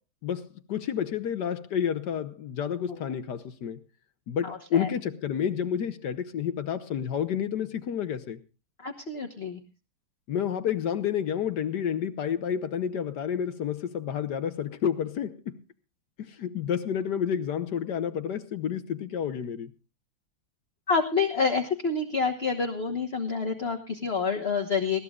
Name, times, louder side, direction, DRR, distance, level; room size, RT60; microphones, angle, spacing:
voice 1, 0.2-3.8 4.3-8.4 10.3-15.5 16.2-19.7, left 8 dB, 65° left, 1.4 m, -30 dB
voice 2, 4.5-4.9 8.8-9.6 20.9-25.0, left 5 dB, 35° left, 1.3 m, -28 dB
20.0 x 16.5 x 2.4 m
omnidirectional pair, 2.1 m